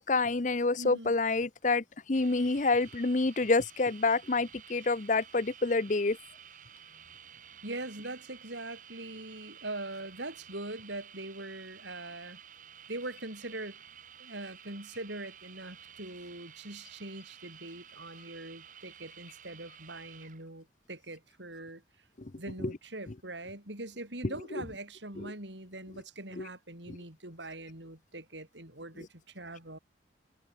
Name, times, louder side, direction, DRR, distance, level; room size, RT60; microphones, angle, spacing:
voice 1, 0.0-6.2 22.2-22.3 22.6-22.7 26.4-26.5, left 3 dB, 40° left, 0.7 m, -28 dB
voice 2, 0.8-1.1 7.6-12.4 12.9-13.8 14.2-21.8 22.4-29.8, right 2 dB, 75° right, 7.7 m, -42 dB
sound 1, 2.1-20.4, right 8 dB, 45° right, 7.2 m, -53 dB
head